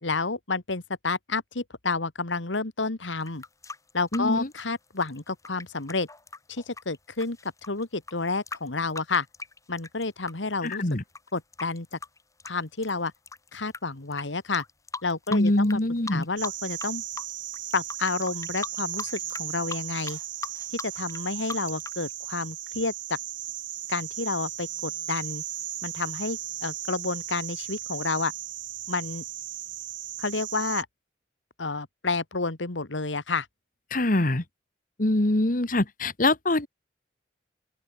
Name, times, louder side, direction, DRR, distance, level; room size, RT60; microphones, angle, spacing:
voice 1, 0.0-3.4 3.9-6.1 6.5-9.3 9.7-10.8 11.3-12.0 12.4-13.1 13.5-14.6 15.0-15.8 16.1-17.0 17.7-20.2 20.8-23.2 23.9-25.4 25.8-28.3 28.9-29.2 30.2-30.9 31.6-33.5, left 3 dB, 90° left, 1.9 m, -30 dB
sound 1, 3.2-10.3 10.7-13.8 14.1-14.2 14.5-15.8 16.1-16.9 17.1-22.0, left 4 dB, 15° left, 4.8 m, -39 dB
voice 2, 4.1-4.5 10.6-11.0 15.3-16.2 33.9-34.4 35.0-36.7, left 1 dB, 45° left, 1.6 m, -24 dB
sound 2, 16.4-30.8, right 13 dB, 90° right, 2.1 m, -36 dB
open air
head